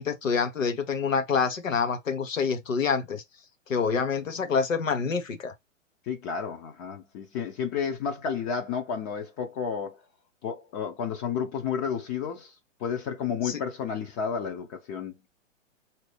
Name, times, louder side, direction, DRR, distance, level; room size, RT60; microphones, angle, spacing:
voice 1, 0.0-3.2 3.7-5.5 13.4-13.6, left 5 dB, 85° left, 1.2 m, -27 dB
voice 2, 6.1-10.0 10.4-12.5 12.8-15.1, left 7 dB, 30° left, 0.7 m, -31 dB
4.1 x 2.9 x 3.2 m
hypercardioid pair, 125°, 38 cm